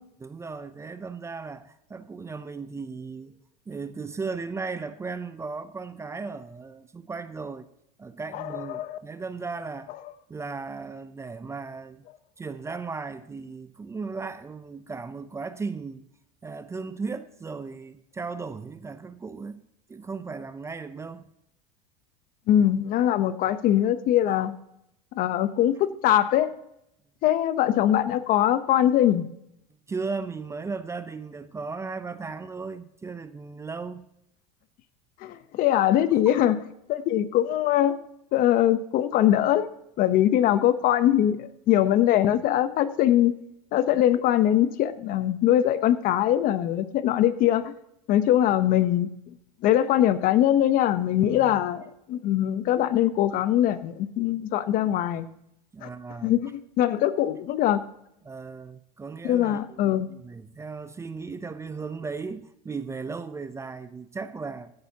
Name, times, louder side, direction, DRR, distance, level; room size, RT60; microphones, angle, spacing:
voice 1, 0.2-3.4 3.7-7.7 8.0-9.9 10.3-12.0 12.4-16.0 16.4-19.6 19.9-21.2 29.9-34.1 51.2-51.6 55.7-56.3 58.2-64.7, right 4 dB, 15° right, 0.6 m, -36 dB
voice 2, 8.3-9.0 22.5-24.5 25.2-26.5 27.2-29.3 35.2-36.6 36.9-38.0 38.3-39.7 40.0-43.3 43.7-47.7 48.1-49.1 49.6-51.8 52.1-55.3 55.8-55.9 56.2-57.8 59.2-60.1, left 12 dB, 50° left, 0.9 m, -22 dB
15.5 x 10.5 x 2.9 m
supercardioid pair, 115°, 19 cm